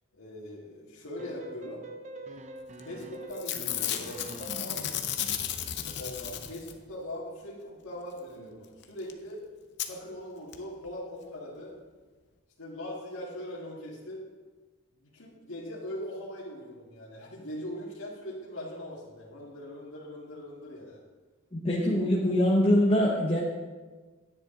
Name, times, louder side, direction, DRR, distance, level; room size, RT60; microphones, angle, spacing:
voice 1, 0.1-1.8 2.8-5.1 5.8-9.4 9.8-11.8 12.6-14.3 15.0-21.0, left 1 dB, 80° left, -8 dB, 2.0 m, -41 dB
sound 1, 1.2-4.8, right 1 dB, 35° right, 0.6 m, -44 dB
Packing tape duct tape / Tearing, 2.8-3.0 3.3-6.9 8.8-8.9 9.1-9.2 9.8-9.9 10.5-10.6 10.8-10.9, left 10 dB, 50° left, 0.7 m, -34 dB
voice 2, 21.5-23.4, left 1 dB, 25° left, -4 dB, 0.9 m, -23 dB
10.5 x 9.6 x 3.9 m, 1.3 s
head